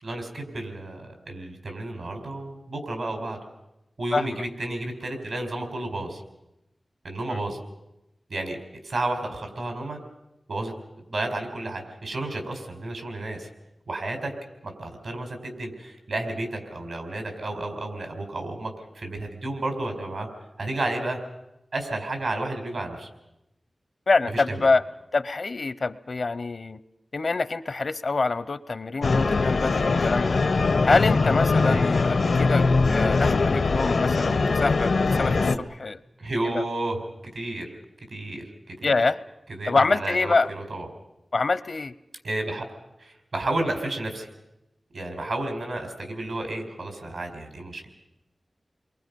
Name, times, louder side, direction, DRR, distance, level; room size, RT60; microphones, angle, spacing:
voice 1, 0.0-3.4 4.0-6.2 7.0-7.6 8.3-8.6 8.8-10.0 10.5-10.7 11.1-13.5 13.9-14.3 14.6-20.3 20.6-21.2 21.7-23.1 24.3-24.6 31.7-31.8 36.2-37.0 37.3-37.7 38.1-39.0 39.6-40.9 42.2-42.7 43.0-44.3 44.9-47.9, right 2 dB, 85° right, 4 dB, 4.4 m, -31 dB
voice 2, 4.1-4.4 24.1-24.8 25.1-26.8 27.1-30.4 30.8-36.0 36.4-36.6 38.8-39.2 39.7-40.5 41.3-41.9, left 3 dB, 65° left, 15 dB, 0.7 m, -25 dB
sound 1, 29.0-35.6, left 3 dB, 85° left, 1.0 m, -22 dB
29.5 x 23.0 x 5.4 m, 0.90 s
wide cardioid pair, 70°, 0 cm